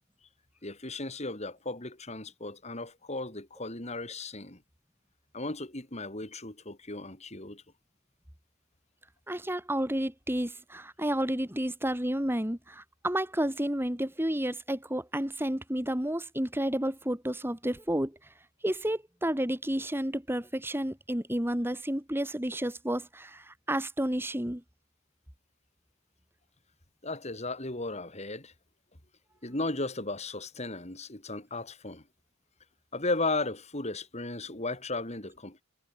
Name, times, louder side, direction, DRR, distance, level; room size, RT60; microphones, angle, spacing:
voice 1, 0.6-4.6 5.3-7.6 27.0-28.5 29.4-32.0 32.9-35.6, left 2 dB, 35° left, 3.8 m, -35 dB
voice 2, 9.3-18.3 18.6-24.6, right 1 dB, 10° right, 2.4 m, -31 dB
head